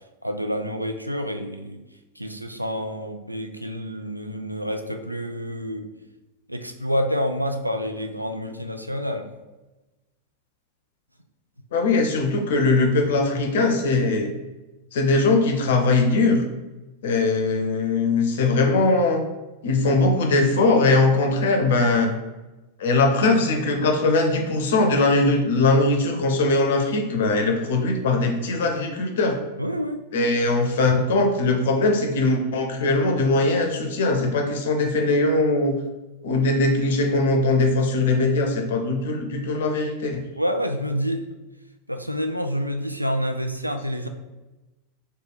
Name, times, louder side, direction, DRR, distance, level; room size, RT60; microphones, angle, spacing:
voice 1, 0.2-1.8 2.2-5.9 6.5-9.3 29.6-30.0 40.4-41.2 41.9-44.1, equal, 90° right, 6 dB, 0.3 m, -28 dB
voice 2, 11.7-14.3 14.9-16.4 17.0-19.2 19.6-22.1 22.8-29.4 30.1-35.8 36.2-40.2, left 2 dB, 60° left, 4 dB, 0.6 m, -21 dB
3.2 x 2.2 x 3.8 m, 1.1 s
figure-of-eight pair, 90°, 0 cm